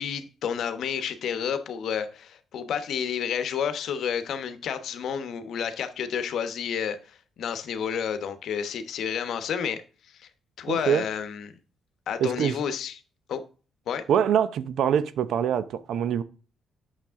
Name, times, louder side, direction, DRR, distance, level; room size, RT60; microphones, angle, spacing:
voice 1, 0.0-9.8 10.1-10.3 10.6-11.5 12.1-13.0 13.3-13.4 13.9-14.0, left 7 dB, 70° left, 1.0 m, -30 dB
voice 2, 10.7-11.0 12.2-12.6 14.1-16.2, right 8 dB, 75° right, 0.7 m, -24 dB
8.9 x 6.6 x 3.6 m
cardioid pair, 90°, 0 cm